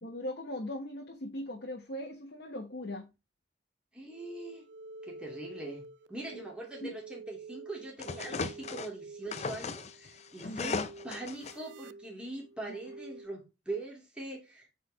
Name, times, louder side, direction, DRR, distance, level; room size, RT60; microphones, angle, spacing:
voice 1, 0.0-3.1 6.3-6.5 6.8-7.0 10.4-10.9, left 1 dB, 60° left, 1.3 m, -39 dB
voice 2, 3.9-4.6 5.0-14.7, right 2 dB, 5° right, 2.5 m, -42 dB
sound 1, 4.1-13.3, right 3 dB, 70° right, 0.4 m, -49 dB
sound 2, 8.0-8.9 9.3-11.5, left 4 dB, 35° left, 0.5 m, -37 dB
7.9 x 4.6 x 3.3 m
head